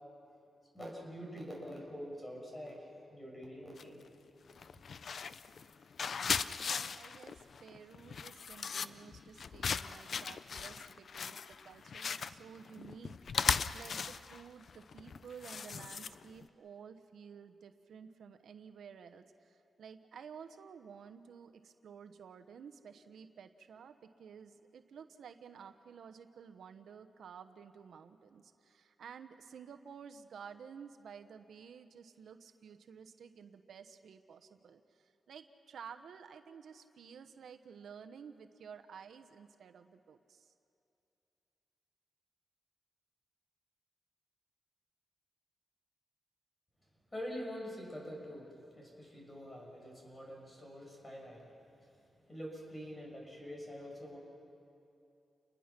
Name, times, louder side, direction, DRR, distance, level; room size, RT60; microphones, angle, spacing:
voice 1, 0.7-4.0 47.1-51.5 52.3-54.2, equal, 20° left, -1 dB, 7.0 m, -45 dB
sound 1, 3.8-4.1 4.5-16.5, left 6 dB, 60° left, 0.5 m, -38 dB
voice 2, 6.6-40.5, right 7 dB, 85° right, 9 dB, 1.0 m, -53 dB
29.5 x 21.0 x 6.0 m, 2.8 s
cardioid pair, 100°, 0 cm